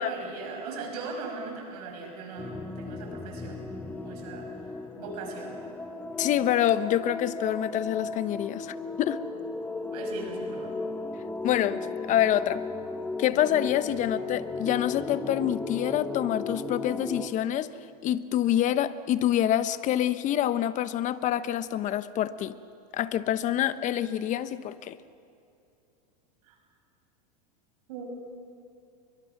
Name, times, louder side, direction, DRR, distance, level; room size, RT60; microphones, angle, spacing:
voice 1, 0.0-3.6 4.0-4.5 5.0-5.6 9.9-10.7 26.4-26.6 27.9-28.0, right 4 dB, 70° right, 2 dB, 6.1 m, -39 dB
sound 1, 2.4-17.3, left 3 dB, 10° left, 1.2 m, -36 dB
voice 2, 6.2-9.2 11.4-12.6 13.2-17.7 18.0-22.5 22.9-25.0, left 11 dB, 35° left, 13 dB, 1.0 m, -26 dB
29.0 x 23.5 x 6.0 m, 2.5 s
hypercardioid pair, 115°, 21 cm